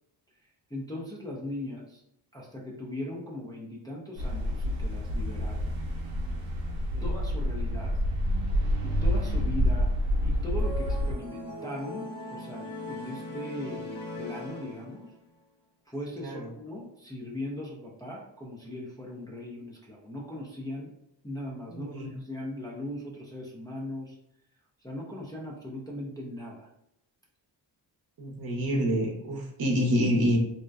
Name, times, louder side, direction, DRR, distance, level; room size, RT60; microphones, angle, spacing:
voice 1, 0.7-2.0 2.3-5.8 7.0-8.0 8.8-9.9 10.2-15.1 15.9-20.9 21.2-24.2 24.8-26.7, left 1 dB, 10° left, -4 dB, 0.5 m, -39 dB
sound 1, 4.2-11.1, equal, 90° right, 0.6 m, -28 dB
sound 2, 10.6-15.3, left 2 dB, 60° left, 0.9 m, -40 dB
voice 2, 21.7-22.1 28.2-30.4, equal, 55° right, 0 dB, 0.8 m, -27 dB
2.6 x 2.1 x 2.3 m, 0.79 s
cardioid pair, 75°, 45 cm